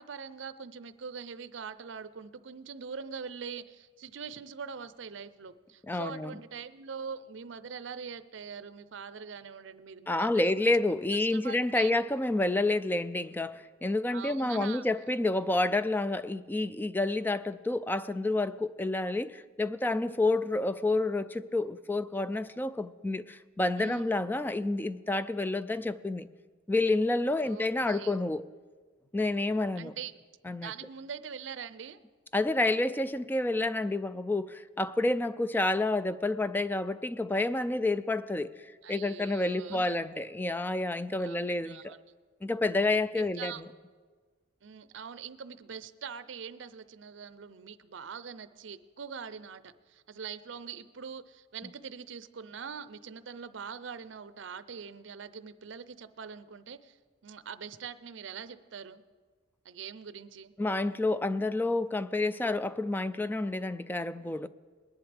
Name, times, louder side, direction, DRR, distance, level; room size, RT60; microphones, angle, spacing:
voice 1, 0.0-10.5 11.3-11.9 14.1-14.9 23.8-24.0 27.4-28.2 29.8-30.1 30.6-32.0 38.8-40.0 41.1-41.4 41.7-42.0 43.2-43.6 44.6-57.0 57.2-59.0 59.6-60.5, right 6 dB, 70° right, 0.6 m, -43 dB
voice 2, 5.9-6.3 10.1-26.3 26.7-28.4 29.1-29.9 30.5-30.7 32.3-38.5 38.9-41.9 42.4-43.5 60.6-64.5, left 2 dB, 10° left, 0.3 m, -29 dB
21.0 x 11.0 x 3.4 m
head